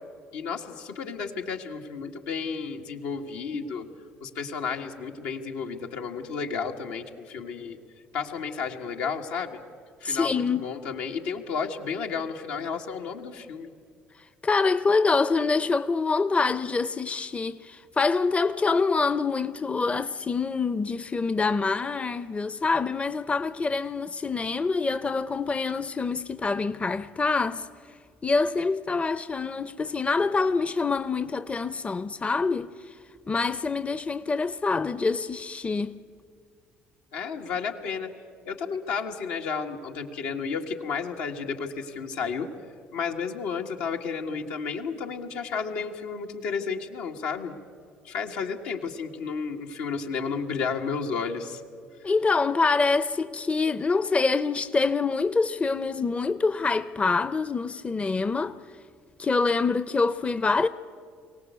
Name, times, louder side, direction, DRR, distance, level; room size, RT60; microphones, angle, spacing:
voice 1, 0.3-3.9 4.2-7.8 8.1-9.6 10.0-13.7 37.1-38.1 38.5-42.5 42.9-47.6 48.0-51.6 52.0-52.1, left 5 dB, 80° left, 1.9 m, -32 dB
voice 2, 10.0-10.7 14.4-27.7 28.2-32.7 33.3-36.0 52.0-58.6 59.2-60.7, left 4 dB, 25° left, 0.7 m, -25 dB
23.5 x 18.0 x 8.2 m
hypercardioid pair, 65°, 5 cm